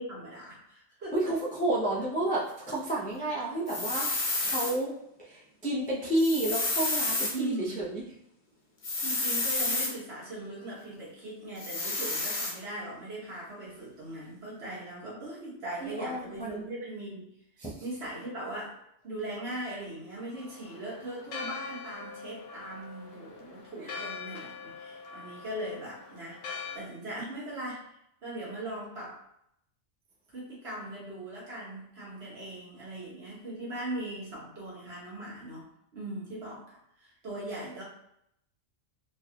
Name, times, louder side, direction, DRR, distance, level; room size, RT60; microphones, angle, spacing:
voice 1, 0.0-1.3 7.3-7.9 9.0-17.3 17.8-18.8 19.0-27.8 28.2-29.2 30.3-35.7 35.9-36.6 37.0-37.8, right 1 dB, 55° right, -6 dB, 1.5 m, -39 dB
voice 2, 1.1-4.9 5.2-8.0 15.8-16.6 17.6-17.8, right 1 dB, 10° left, -6 dB, 0.4 m, -31 dB
sound 1, 3.7-4.7 6.1-7.3 8.8-9.9 11.6-12.5, left 2 dB, 45° left, 0.8 m, -30 dB
Church bell, 20.3-26.8, left 5 dB, 85° left, 1.0 m, -43 dB
3.9 x 2.4 x 2.8 m, 0.76 s
omnidirectional pair, 1.3 m